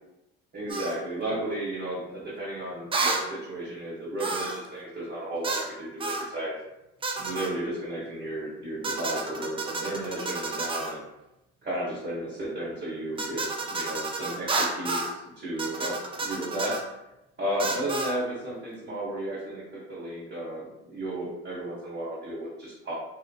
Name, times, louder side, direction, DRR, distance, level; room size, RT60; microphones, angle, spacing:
voice 1, 0.5-6.5 7.1-11.0 11.6-16.8 17.4-23.0, right 1 dB, 35° right, -10 dB, 1.2 m, -33 dB
sound 1, 0.7-1.0 2.9-3.3 4.2-4.7 5.4-5.7 6.0-6.3 7.0-7.5 8.8-11.0 13.2-15.1 15.6-16.8 17.6-18.2, right 3 dB, 20° right, 0.3 m, -31 dB
2.7 x 2.4 x 2.2 m, 0.91 s
supercardioid pair, 80°, 31 cm